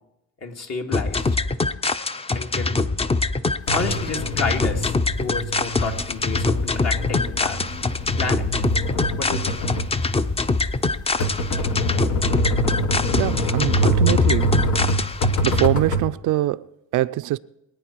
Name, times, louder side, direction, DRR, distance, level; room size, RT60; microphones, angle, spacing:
voice 1, 0.4-1.4 2.3-2.8 3.7-7.6 8.2-8.7 9.2-9.5, left 4 dB, 55° left, 2.2 m, -30 dB
sound 1, 0.9-15.7, left 3 dB, 20° left, 0.6 m, -24 dB
sound 2, 3.7-16.1, equal, 75° left, 1.5 m, -25 dB
voice 2, 13.1-14.6 15.4-17.4, right 15 dB, 80° right, 0.5 m, -23 dB
23.0 x 9.1 x 4.6 m
cardioid pair, 90°, 30 cm